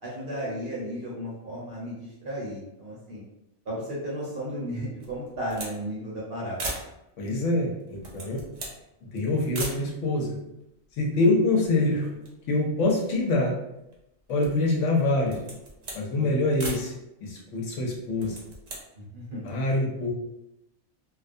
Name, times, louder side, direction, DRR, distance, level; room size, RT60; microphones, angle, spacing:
voice 1, 0.0-3.2 3.7-6.7 16.1-16.3 18.9-19.5, equal, 55° right, -6 dB, 0.9 m, -34 dB
sound 1, 5.0-5.8 6.1-6.2 6.5-6.9 7.8-8.8 9.5-9.8 10.6-10.7 10.9-11.8 12.1-13.4 13.9-14.7 15.2-16.0 16.6-16.9 18.0-18.8, right 2 dB, 75° right, 0.3 m, -38 dB
voice 2, 7.2-8.4 9.1-10.3 11.0-12.1 12.5-13.5 14.3-15.4 15.9-16.9 17.2-18.4 19.4-20.1, left 2 dB, 70° left, -2 dB, 0.9 m, -25 dB
2.3 x 2.1 x 2.5 m, 0.87 s
omnidirectional pair, 1.4 m